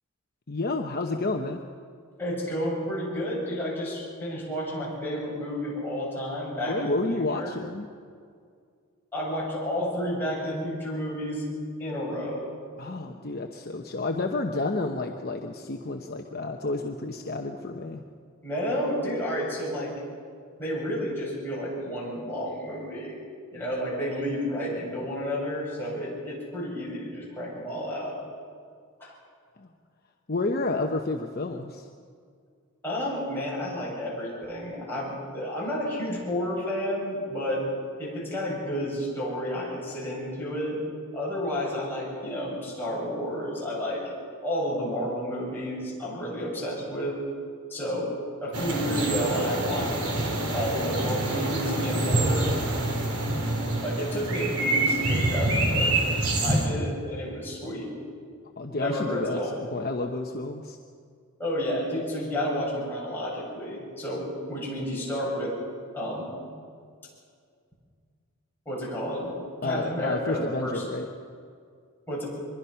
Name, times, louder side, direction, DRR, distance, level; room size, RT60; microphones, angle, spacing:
voice 1, 0.5-1.6 6.7-7.9 12.8-18.0 29.6-29.7 30.3-31.9 58.6-60.8 69.6-71.1, left 2 dB, 45° left, 3 dB, 1.0 m, -30 dB
voice 2, 2.2-6.9 7.3-7.6 9.1-11.4 11.8-12.4 18.4-19.9 20.6-23.2 23.5-28.2 29.0-29.1 32.8-37.7 38.0-40.8 41.1-44.0 44.4-47.2 47.7-48.1 48.4-49.9 50.5-52.5 53.8-55.9 56.4-57.9 58.7-59.5 61.4-65.5 65.9-66.3 68.7-69.3 69.6-70.9 72.1-72.2, equal, 10° left, -6 dB, 7.7 m, -31 dB
sound 1, 48.5-56.7, right 2 dB, 85° right, 3.7 m, -26 dB
24.0 x 22.0 x 5.8 m, 2.2 s
head